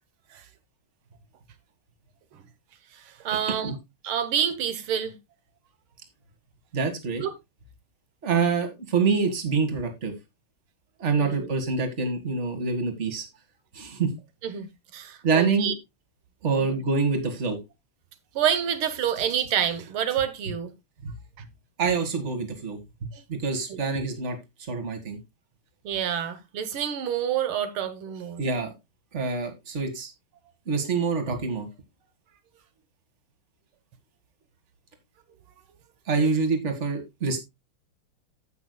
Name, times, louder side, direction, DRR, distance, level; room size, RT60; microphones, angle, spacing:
voice 1, 2.9-3.7 4.0-5.2 7.2-7.3 11.2-11.5 14.4-15.7 16.6-16.8 18.4-20.7 23.1-23.2 23.7-23.8 25.9-28.4, right 9 dB, 90° right, 1.9 m, -28 dB
voice 2, 6.7-7.2 8.2-10.1 11.0-13.3 13.7-14.1 15.2-15.7 16.4-17.6 21.0-21.1 21.8-24.4 24.7-25.2 28.4-28.7 29.1-30.1 30.7-31.7 36.1-37.4, right 4 dB, 35° right, 1.9 m, -26 dB
16.0 x 5.9 x 2.2 m
omnidirectional pair, 2.3 m